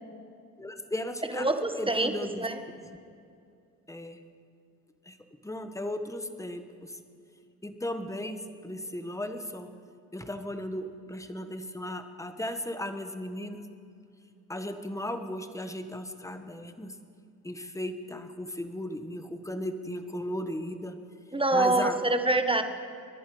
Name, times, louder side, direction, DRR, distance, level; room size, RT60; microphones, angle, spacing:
voice 1, 0.6-2.5 3.9-4.2 5.1-5.2 5.4-7.0 7.6-9.7 10.1-13.7 14.5-16.9 17.4-21.0 21.5-22.0, left 1 dB, 10° left, 8 dB, 1.3 m, -36 dB
voice 2, 1.3-2.1 2.4-2.6 21.3-22.6, right 2 dB, 15° right, 7 dB, 1.4 m, -25 dB
26.0 x 11.0 x 5.0 m, 2.4 s
supercardioid pair, 65°, 36 cm